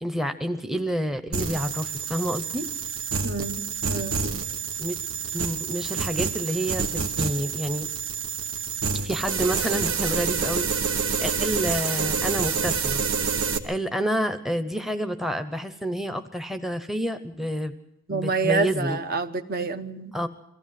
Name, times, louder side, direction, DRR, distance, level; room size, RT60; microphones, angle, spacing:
voice 1, 0.0-2.7 4.8-5.0 5.3-7.9 8.9-13.0 13.6-17.7 18.1-19.0 20.1-20.3, equal, ahead, 9 dB, 0.8 m, -29 dB
sound 1, 1.3-13.6, right 5 dB, 75° right, 1.4 m, -28 dB
voice 2, 3.2-4.2 18.1-20.1, right 4 dB, 45° right, 9 dB, 1.0 m, -28 dB
23.0 x 15.5 x 7.6 m, 0.87 s
head